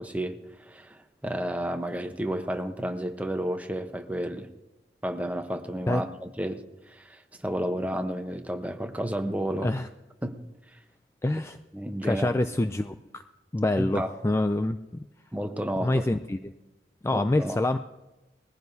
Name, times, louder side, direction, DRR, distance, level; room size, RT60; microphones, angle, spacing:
voice 1, 0.0-4.5 5.0-9.7 10.2-10.4 11.7-12.3 13.8-14.1 15.3-16.0 17.1-17.6, right 1 dB, 10° right, 6 dB, 0.9 m, -32 dB
voice 2, 11.2-11.6 12.0-13.2 13.5-15.1 15.8-16.4 17.0-17.8, left 2 dB, 15° left, 9 dB, 0.3 m, -26 dB
20.0 x 15.5 x 2.7 m, 1.0 s
head